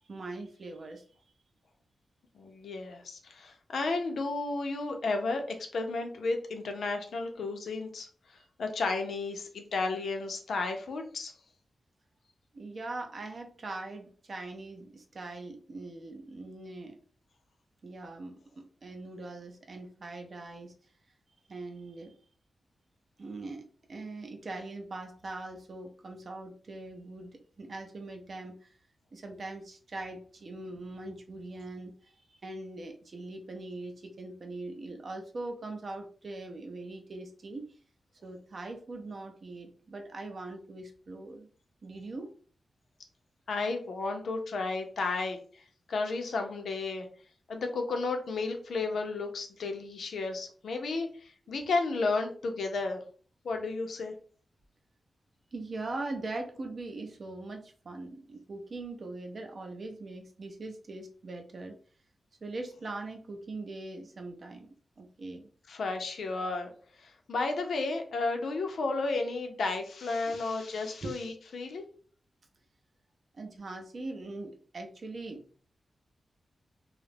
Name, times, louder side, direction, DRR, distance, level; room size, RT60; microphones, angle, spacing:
voice 1, 0.1-1.0 12.5-17.0 17.8-20.7 21.5-22.1 23.2-23.6 23.9-28.8 29.1-37.8 38.2-41.5 41.8-42.4 55.5-61.8 62.4-64.7 65.0-65.4 70.3-70.4 71.0-71.1 73.3-75.4, right 2 dB, 45° right, 3 dB, 0.5 m, -41 dB
voice 2, 2.3-11.3 43.5-45.6 45.9-47.1 47.5-53.0 53.4-54.1 65.7-66.7 67.0-71.8, left 3 dB, 75° left, 4 dB, 0.5 m, -33 dB
2.3 x 2.0 x 3.2 m, 0.43 s
wide cardioid pair, 165°, 0 cm